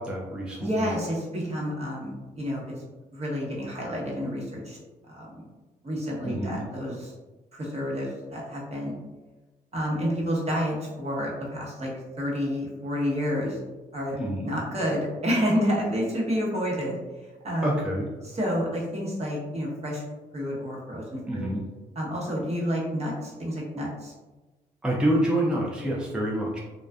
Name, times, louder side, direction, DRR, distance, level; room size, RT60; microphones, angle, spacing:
voice 1, 0.0-0.9 6.2-6.6 14.2-14.6 17.6-18.1 21.3-21.6 24.8-26.6, right 1 dB, 5° right, -4 dB, 0.5 m, -27 dB
voice 2, 0.6-2.7 3.1-4.8 5.1-5.4 5.8-7.1 7.5-8.9 9.7-11.9 12.2-13.6 13.9-17.0 17.4-17.8 18.2-20.0 20.3-21.5 21.9-24.1, equal, 40° right, -4 dB, 0.9 m, -29 dB
2.4 x 2.2 x 2.3 m, 1.2 s
supercardioid pair, 60°, 17 cm